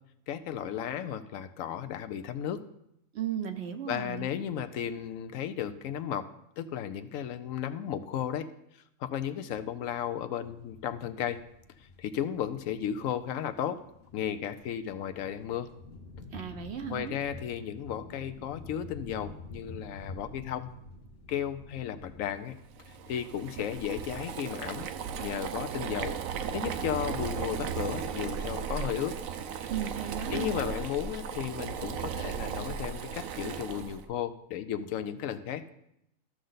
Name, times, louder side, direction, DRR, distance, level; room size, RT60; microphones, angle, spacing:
voice 1, 0.3-2.6 3.9-6.3 6.6-8.5 9.0-11.4 11.8-13.8 14.1-15.7 16.9-20.7 21.3-22.6 22.9-24.9 25.2-26.1 26.5-29.2 30.3-35.6, left 9 dB, 75° left, 10 dB, 0.9 m, -34 dB
voice 2, 3.1-4.3 16.3-17.1 29.7-30.6, right 9 dB, 60° right, 7 dB, 0.8 m, -36 dB
sound 1, 10.4-24.2, left 3 dB, 50° left, 1.1 m, -49 dB
Boiling, 22.8-34.0, right 7 dB, 80° right, 1.1 m, -36 dB
13.0 x 6.4 x 3.9 m, 0.80 s
omnidirectional pair, 1.5 m